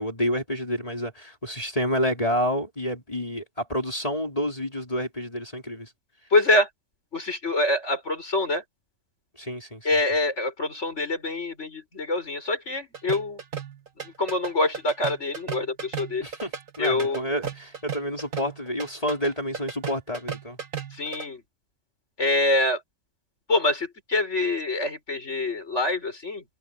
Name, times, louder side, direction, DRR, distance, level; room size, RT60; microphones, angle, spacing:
voice 1, 0.0-5.9 9.4-9.9 16.2-16.5 16.8-20.6, equal, 25° left, 4.6 m, -29 dB
voice 2, 6.3-6.7 7.1-8.6 9.8-13.4 14.2-16.2 16.8-17.2 20.9-21.4 22.2-22.8 23.5-26.4, left 2 dB, 60° left, 5.7 m, -25 dB
sound 1, 12.9-21.3, right 6 dB, 80° right, 2.3 m, -35 dB
omnidirectional pair, 1.4 m